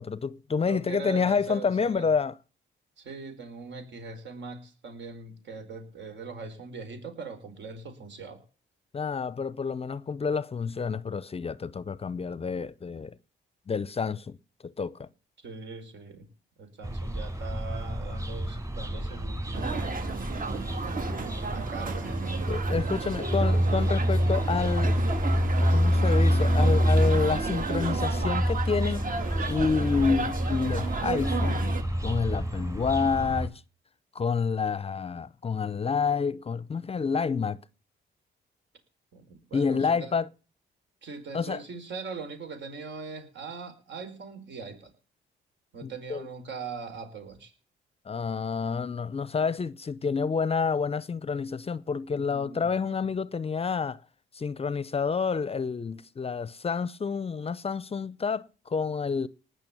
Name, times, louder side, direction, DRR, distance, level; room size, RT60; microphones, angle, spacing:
voice 1, 0.0-2.3 8.9-13.2 13.7-14.4 14.6-15.1 22.5-25.0 25.7-29.0 29.5-31.6 32.0-33.6 34.1-37.6 39.5-40.3 41.3-41.6 45.8-46.3 48.1-54.0 54.3-59.3, left 5 dB, 30° left, 0.6 m, -29 dB
voice 2, 0.6-2.1 3.0-8.4 15.4-16.3 16.6-20.0 21.2-22.2 39.1-40.2 41.0-44.9 45.7-47.5 52.1-53.1, right 4 dB, 65° right, 4.7 m, -41 dB
sound 1, 16.8-33.5, equal, 15° right, 3.2 m, -27 dB
sound 2, 19.5-31.8, right 5 dB, 45° right, 2.1 m, -34 dB
19.5 x 6.7 x 7.0 m
cardioid pair, 90°, 20 cm